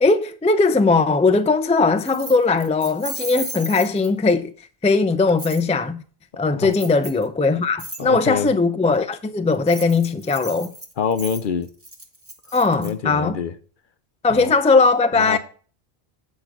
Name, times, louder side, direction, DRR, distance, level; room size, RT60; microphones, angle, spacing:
voice 1, 0.0-4.5 4.8-6.0 6.4-10.7 12.5-13.4 14.2-15.4, left 3 dB, 10° left, 0.3 m, -19 dB
Keys jangling, 2.0-4.3 5.4-5.6 6.7-7.2 7.8-8.0 9.5-12.9, right 1 dB, 15° right, 1.1 m, -35 dB
voice 2, 8.0-8.5 11.0-11.7 12.8-13.5 14.3-14.5 15.2-15.4, left 6 dB, 60° left, 0.8 m, -25 dB
8.7 x 5.3 x 6.0 m
omnidirectional pair, 1.0 m